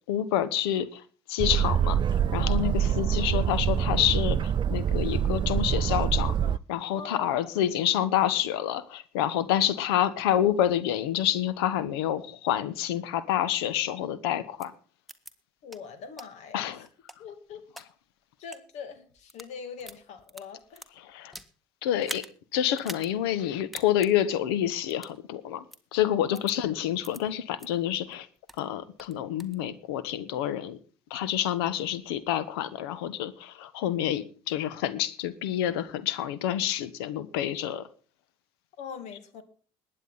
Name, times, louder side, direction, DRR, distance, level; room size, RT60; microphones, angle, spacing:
voice 1, 0.1-1.0 1.3-6.3 6.7-14.7 16.5-16.9 21.0-21.3 21.8-22.3 22.5-25.6 25.9-28.3 28.6-30.8 31.1-37.9, left 11 dB, 80° left, 15 dB, 1.2 m, -28 dB
Boat Water vehicle, 1.4-6.6, right 9 dB, 40° right, 0.5 m, -25 dB
voice 2, 2.4-2.7 7.0-7.5 15.6-16.9 17.2-17.6 18.4-20.8 26.3-26.4 38.8-39.4, left 6 dB, 65° left, 10 dB, 2.6 m, -42 dB
sound 1, 14.6-14.7 15.1-15.3 15.7-15.8 16.2-16.3 16.8-17.9 18.4-18.6 19.2-19.5 19.8-21.5 22.0-22.3 22.8-23.1 23.4-23.5 23.7-24.1 24.9-25.2 25.7-25.8 26.4-26.5 27.0-27.2 27.6-27.7 28.1-28.6 29.0-29.6, right 1 dB, ahead, 1.6 m, -42 dB
20.5 x 9.1 x 4.1 m, 0.40 s
hypercardioid pair, 65°, 13 cm